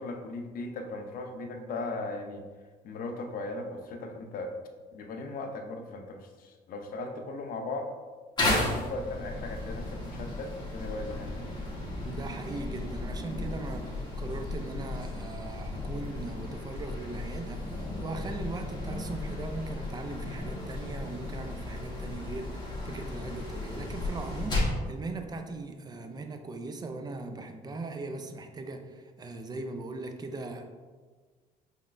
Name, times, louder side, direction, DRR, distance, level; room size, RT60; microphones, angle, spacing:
voice 1, 0.0-2.5 2.8-4.5 4.9-7.9 8.5-11.4, left 2 dB, 60° left, 5 dB, 0.6 m, -38 dB
sound 1, 8.4-24.8, left 2 dB, 25° left, 1.4 m, -34 dB
voice 2, 12.0-30.6, right 2 dB, 25° right, 6 dB, 0.4 m, -39 dB
5.2 x 3.3 x 2.5 m, 1.5 s
cardioid pair, 110°, 17 cm